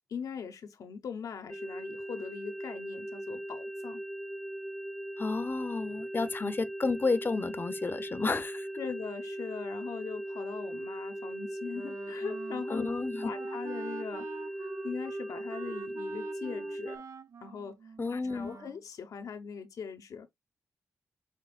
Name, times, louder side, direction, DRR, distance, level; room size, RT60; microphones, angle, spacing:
voice 1, 0.1-4.0 6.1-6.3 8.8-12.9 13.2-14.3 14.6-17.0 17.4-17.8 18.1-20.3, left 6 dB, 70° left, 1.1 m, -41 dB
sound 1, 1.5-17.0, right 1 dB, 5° left, 0.8 m, -39 dB
voice 2, 5.2-8.7 12.7-13.3 18.0-18.6, left 3 dB, 35° left, 0.8 m, -31 dB
Wind instrument woodwind instrument, 11.7-18.8, right 6 dB, 55° right, 0.4 m, -47 dB
6.3 x 3.3 x 2.4 m
cardioid pair, 55°, 6 cm